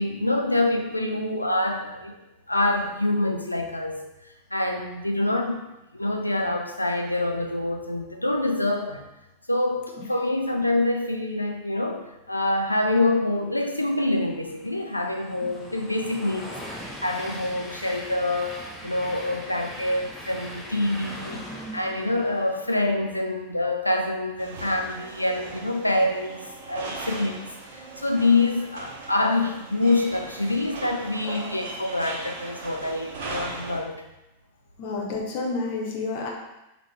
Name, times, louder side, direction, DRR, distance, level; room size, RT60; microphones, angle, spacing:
voice 1, 0.0-2.2 2.5-4.0 4.5-5.6 5.9-9.1 9.5-33.9, left 2 dB, 85° left, 3 dB, 0.4 m, -26 dB
Train, 13.9-23.3, equal, 5° left, 0.6 m, -40 dB
sound 1, 24.4-33.8, right 3 dB, 55° right, 0.6 m, -38 dB
voice 2, 34.8-36.3, left 3 dB, 50° left, -1 dB, 0.7 m, -29 dB
3.6 x 2.1 x 4.1 m, 0.96 s
figure-of-eight pair, 90°, 0 cm